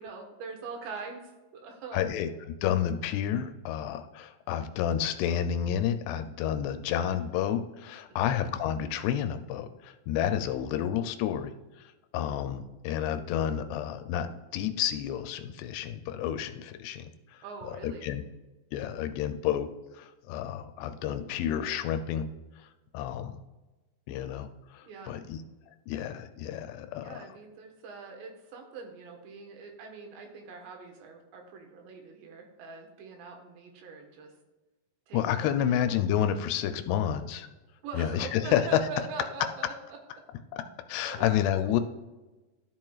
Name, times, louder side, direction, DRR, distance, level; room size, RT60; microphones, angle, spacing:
voice 1, 0.0-2.0 8.1-8.3 17.4-18.1 24.8-25.1 27.0-34.3 35.1-35.8 37.8-40.0 41.0-41.3 41.6-41.8, right 4 dB, 85° right, 3 dB, 3.6 m, -43 dB
voice 2, 1.9-11.5 11.8-18.2 18.7-22.3 22.6-22.7 22.9-23.4 24.1-25.4 25.9-27.2 35.1-37.5 37.9-38.6 40.5-40.6 40.9-41.8, left 10 dB, 80° left, 9 dB, 2.5 m, -30 dB
12.5 x 7.5 x 2.4 m, 1.2 s
omnidirectional pair, 4.9 m